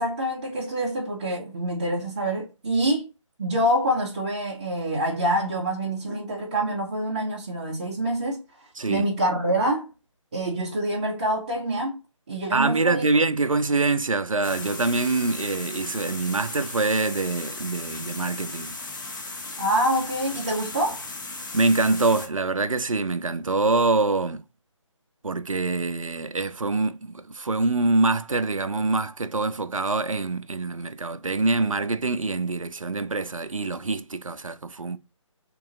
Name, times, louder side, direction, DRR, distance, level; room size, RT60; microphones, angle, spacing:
voice 1, 0.0-3.0 3.4-8.4 8.9-9.9 10.3-12.0 12.3-13.1 19.6-21.0, right 1 dB, 15° right, 0.5 m, -26 dB
voice 2, 8.8-9.1 12.5-18.7 21.5-24.4 25.2-35.0, right 3 dB, 85° right, 0.4 m, -25 dB
sound 1, 14.4-22.3, left 3 dB, 35° left, 0.9 m, -36 dB
3.7 x 3.0 x 3.7 m
figure-of-eight pair, 150°, 17 cm